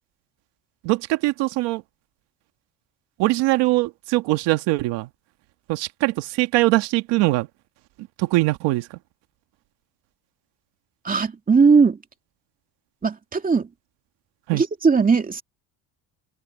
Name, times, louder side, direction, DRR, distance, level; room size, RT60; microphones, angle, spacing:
voice 1, 0.8-1.8 3.2-5.1 5.7-7.5 8.2-8.9 14.5-14.6, right 20 dB, 85° right, 1.8 m, -22 dB
voice 2, 11.0-12.0 13.0-13.7 14.5-15.4, right 5 dB, 20° right, 2.6 m, -18 dB
open air
cardioid pair, 135°, 41 cm